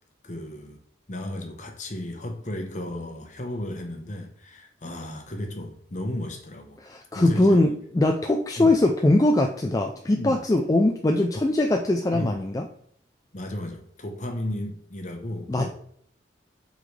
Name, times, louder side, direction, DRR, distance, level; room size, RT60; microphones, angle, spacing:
voice 1, 0.2-0.8 1.1-6.8 7.1-7.6 8.6-8.7 10.0-10.4 12.1-12.4 13.3-15.7, left 1 dB, 40° left, 1.0 m, -34 dB
voice 2, 6.8-12.7 15.5-15.7, left 2 dB, 20° left, 0.4 m, -21 dB
7.9 x 3.9 x 3.3 m
head